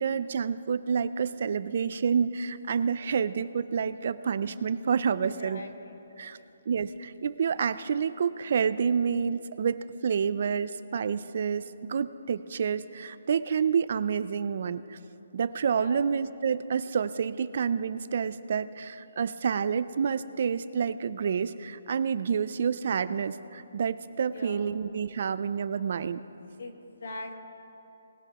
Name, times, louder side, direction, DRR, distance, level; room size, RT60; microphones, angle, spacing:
voice 1, 0.0-5.6 6.2-6.4 6.7-15.0 15.3-26.2, right 6 dB, 45° right, 14 dB, 0.3 m, -28 dB
voice 2, 5.2-5.9 6.2-6.4 15.8-16.0 24.3-24.7 26.6-27.4, left 2 dB, 60° left, 4 dB, 1.5 m, -42 dB
19.5 x 10.5 x 2.9 m, 2.9 s
hypercardioid pair, 170°, 0 cm